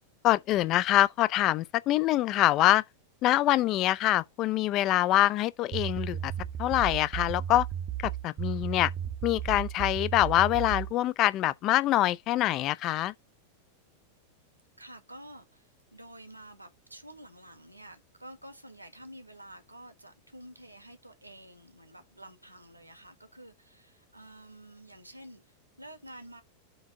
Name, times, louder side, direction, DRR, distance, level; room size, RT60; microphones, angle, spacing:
voice 1, 0.2-2.8 3.2-6.3 6.6-7.7 8.0-8.9 9.2-13.1, left 15 dB, 35° left, 0.5 m, -25 dB
sound 1, 5.7-10.9, right 10 dB, 30° right, 0.7 m, -34 dB
voice 2, 14.8-26.4, right 1 dB, 85° right, 1.6 m, -50 dB
7.9 x 3.5 x 5.4 m
figure-of-eight pair, 90°, 0 cm